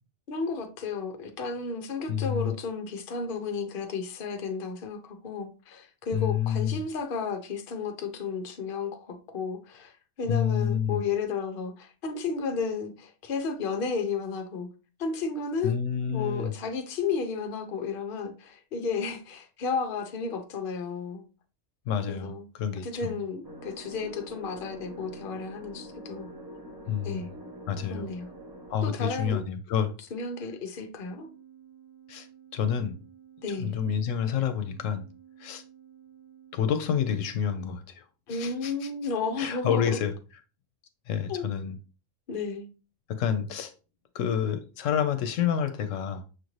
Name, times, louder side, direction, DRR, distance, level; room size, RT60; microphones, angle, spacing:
voice 1, 0.3-14.7 15.0-15.8 16.1-21.2 22.1-22.5 22.8-26.3 27.0-27.3 27.9-28.3 28.8-29.4 30.1-31.3 33.4-33.7 38.3-40.0 41.3-41.5 42.3-42.7, left 4 dB, 50° left, 0.8 m, -33 dB
voice 2, 2.1-2.5 6.1-6.7 10.3-11.0 15.6-16.5 21.9-23.2 26.9-27.4 27.7-28.1 28.7-29.9 32.1-32.3 32.5-32.9 33.6-35.0 35.4-35.6 36.5-38.0 38.3-38.9 39.4-40.1 41.1-41.8 43.1-43.7 44.1-46.2, left 8 dB, 80° left, 0.9 m, -28 dB
sound 1, 23.4-28.7, equal, 25° right, 0.6 m, -44 dB
Organ, 30.9-37.4, right 9 dB, 65° right, 2.7 m, -54 dB
6.3 x 2.6 x 3.0 m
omnidirectional pair, 1.3 m